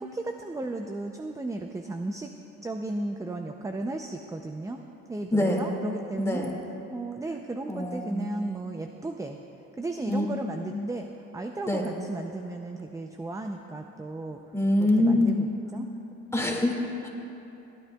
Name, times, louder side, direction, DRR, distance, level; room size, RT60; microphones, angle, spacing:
voice 1, 0.0-2.3 2.6-4.8 5.1-6.5 6.9-9.4 9.8-14.4 14.8-15.9, right 2 dB, 10° right, 4 dB, 0.4 m, -35 dB
voice 2, 5.3-5.7 6.2-6.5 7.7-8.3 10.1-10.3 11.7-11.8 14.5-15.4 16.3-16.8 17.0-17.1, left 1 dB, 10° left, -1 dB, 2.0 m, -24 dB
27.5 x 9.8 x 2.3 m, 2.9 s
cardioid pair, 90°, 30 cm